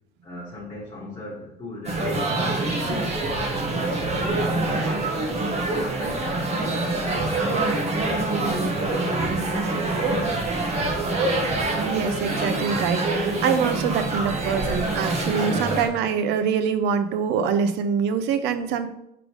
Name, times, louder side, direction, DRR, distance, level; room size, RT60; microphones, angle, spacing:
voice 1, 0.2-3.9 4.6-10.4, left 1 dB, 20° left, -5 dB, 2.6 m, -39 dB
sound 1, 1.8-15.9, right 2 dB, 40° right, 1.7 m, -25 dB
voice 2, 11.8-18.9, right 6 dB, 90° right, 10 dB, 0.8 m, -24 dB
5.9 x 5.1 x 5.0 m, 0.78 s
cardioid pair, 110°, 17 cm